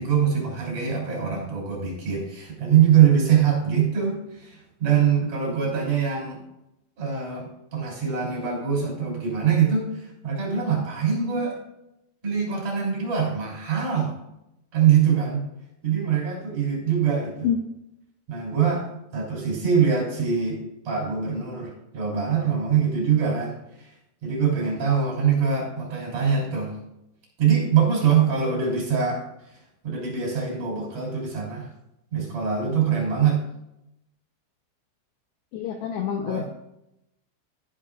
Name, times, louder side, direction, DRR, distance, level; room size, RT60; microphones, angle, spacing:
voice 1, 0.0-6.4 7.0-11.6 12.2-14.1 14.7-15.4 15.8-17.5 18.3-23.9 24.2-26.8 27.4-29.2 29.8-31.7 32.1-33.4 36.2-36.5, right 7 dB, 45° right, -2 dB, 4.2 m, -23 dB
voice 2, 35.5-36.5, left 8 dB, 80° left, 3 dB, 2.6 m, -27 dB
13.0 x 9.9 x 2.4 m, 0.84 s
omnidirectional pair, 5.8 m